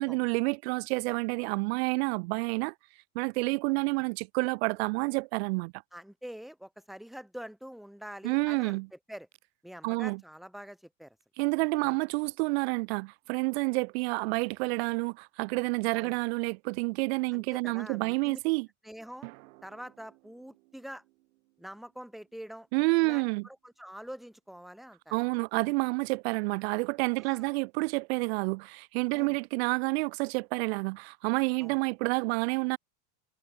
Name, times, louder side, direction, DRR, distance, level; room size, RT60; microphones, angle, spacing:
voice 1, 0.0-2.7 3.2-5.7 8.2-8.9 9.8-10.2 11.4-18.7 22.7-23.5 25.1-32.8, right 27 dB, 50° right, 0.4 m, -29 dB
voice 2, 5.9-9.3 9.6-11.2 11.8-12.0 15.9-16.2 17.3-18.4 18.8-19.3 19.6-21.0 21.6-22.7 23.0-25.2 27.2-27.5 29.1-29.4 31.6-31.8, equal, ahead, 0.6 m, -45 dB
sound 1, 19.2-23.5, right 21 dB, 70° right, 3.9 m, -56 dB
supercardioid pair, 170°, 43 cm